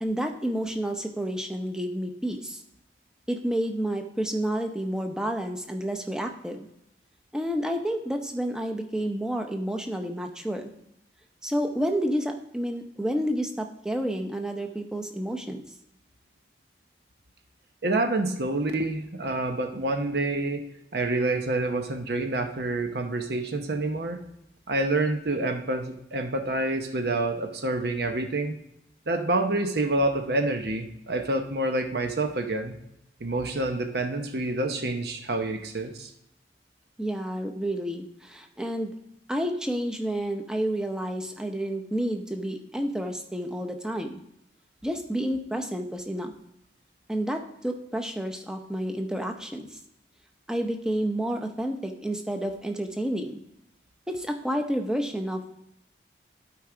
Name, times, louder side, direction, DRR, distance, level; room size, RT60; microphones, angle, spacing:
voice 1, 0.0-2.6 3.3-6.7 7.3-10.7 11.4-15.6 37.0-38.9 39.3-44.2 44.8-46.3 47.1-49.8 50.5-53.4 54.1-55.6, equal, 5° right, 5 dB, 0.6 m, -30 dB
voice 2, 17.8-20.7 20.9-24.2 24.7-28.6 29.1-32.8 33.2-36.1, right 2 dB, 70° right, 6 dB, 0.8 m, -27 dB
12.0 x 4.7 x 3.7 m, 0.81 s
head